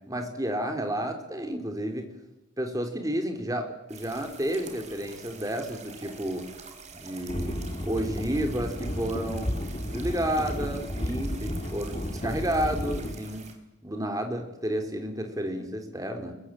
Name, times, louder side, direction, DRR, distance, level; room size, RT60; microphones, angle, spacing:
voice 1, 0.1-2.1 2.6-6.5 6.9-13.5 13.8-16.3, right 1 dB, 20° right, 5 dB, 3.7 m, -31 dB
sound 1, 3.9-13.5, right 5 dB, 35° right, 3.9 m, -47 dB
sound 2, 7.3-13.1, equal, 30° left, 2.6 m, -33 dB
24.0 x 22.5 x 8.9 m, 0.98 s
head